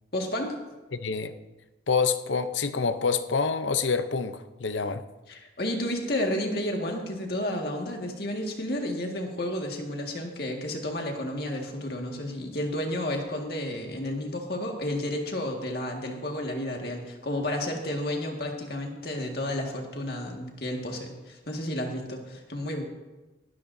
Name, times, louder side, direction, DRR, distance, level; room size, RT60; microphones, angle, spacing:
voice 1, 0.1-0.6 5.3-22.8, left 1 dB, 55° left, 1.9 m, -31 dB
voice 2, 0.9-1.3 1.9-5.0, left 5 dB, 80° left, 0.7 m, -27 dB
18.5 x 13.0 x 2.7 m
head